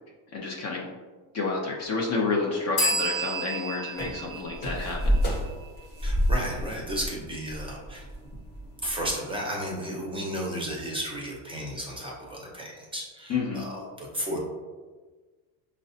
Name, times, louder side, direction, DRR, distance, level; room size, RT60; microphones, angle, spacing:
voice 1, 0.3-0.9 1.3-5.2 13.3-13.7, left 3 dB, 35° left, -2 dB, 0.5 m, -29 dB
sound 1, 2.8-6.3, right 1 dB, 70° left, 1.1 m, -32 dB
sound 2, 4.0-9.1, equal, 20° left, 0.8 m, -28 dB
voice 2, 6.0-8.0 8.8-14.4, equal, 10° right, -3 dB, 0.6 m, -33 dB
4.5 x 2.1 x 2.6 m, 1.4 s
supercardioid pair, 110°, 48 cm